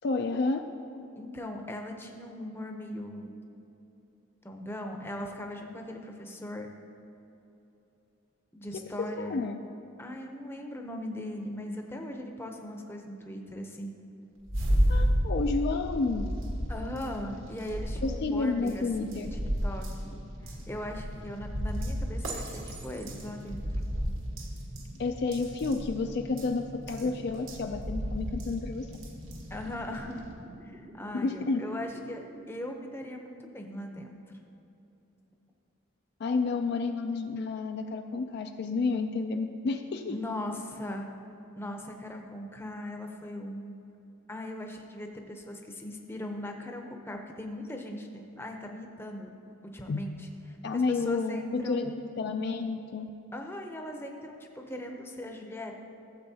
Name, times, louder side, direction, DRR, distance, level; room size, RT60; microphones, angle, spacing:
voice 1, 0.0-0.6 8.7-8.8 9.2-9.6 14.9-16.3 18.0-19.4 25.0-28.9 31.1-31.7 36.2-40.2 49.9-50.1 50.6-53.1, left 3 dB, 50° left, 6 dB, 0.4 m, -30 dB
voice 2, 1.2-3.3 4.4-6.7 8.5-9.4 10.0-13.9 16.7-23.6 29.5-30.3 30.6-34.2 40.1-41.1 41.6-43.7 44.3-48.1 48.4-49.3 49.7-52.0 53.3-55.7, left 1 dB, 10° left, 3 dB, 0.6 m, -39 dB
sound 1, 14.4-30.3, equal, 70° right, 1.4 m, -33 dB
sound 2, 19.2-32.4, right 1 dB, 40° right, 0.7 m, -47 dB
15.5 x 7.7 x 2.8 m, 2.9 s
head